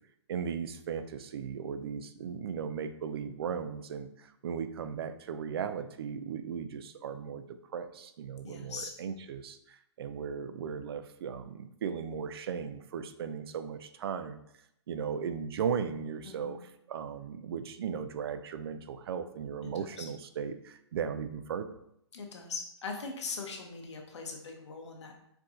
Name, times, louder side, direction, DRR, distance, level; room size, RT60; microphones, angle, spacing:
voice 1, 0.3-14.4 14.9-16.6 16.9-21.8, right 7 dB, 55° right, 10 dB, 0.4 m, -37 dB
voice 2, 8.4-8.9 16.2-16.6 19.6-20.1 22.1-25.1, left 4 dB, 75° left, 2 dB, 1.0 m, -41 dB
4.7 x 2.6 x 3.6 m, 0.76 s
hypercardioid pair, 150°, 15 cm